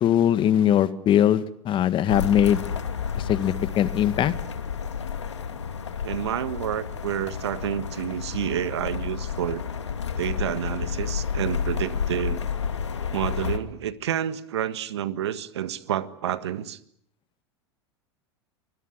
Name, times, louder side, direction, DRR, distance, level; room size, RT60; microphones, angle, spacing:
voice 1, 0.0-2.6 3.2-4.3, left 10 dB, 35° left, 1.8 m, -21 dB
sound 1, 2.1-13.6, left 7 dB, 85° left, 2.5 m, -30 dB
voice 2, 6.0-9.6 10.2-12.4 13.1-16.8, right 10 dB, 75° right, 1.6 m, -29 dB
25.5 x 21.0 x 9.1 m
hypercardioid pair, 90°, 14 cm